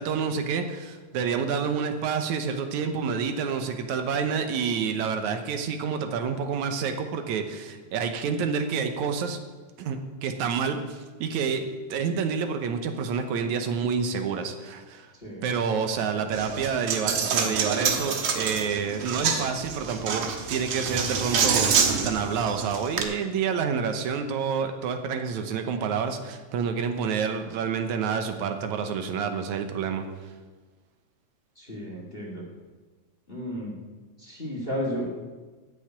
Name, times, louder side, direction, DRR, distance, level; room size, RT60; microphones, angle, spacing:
voice 1, 0.0-9.4 9.8-15.1 15.4-30.0, right 6 dB, 80° right, 6 dB, 2.3 m, -28 dB
Coin (dropping), 16.3-23.0, right 6 dB, 65° right, 2.2 m, -27 dB
voice 2, 31.6-32.4 33.3-33.8 34.2-35.1, equal, 20° left, -1 dB, 1.8 m, -33 dB
13.5 x 6.6 x 8.9 m, 1.3 s
omnidirectional pair, 3.3 m